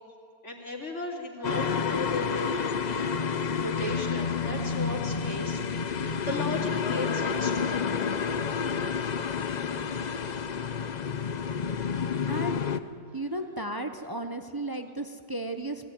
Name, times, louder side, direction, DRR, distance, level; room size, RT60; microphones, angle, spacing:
voice 1, 0.4-7.9, left 2 dB, 45° left, -3 dB, 3.1 m, -36 dB
sound 1, 1.4-12.8, left 6 dB, 75° left, 0.4 m, -29 dB
voice 2, 12.3-12.6 13.1-15.9, right 1 dB, 35° right, 7 dB, 0.3 m, -34 dB
20.0 x 15.5 x 9.4 m, 2.4 s
omnidirectional pair, 1.7 m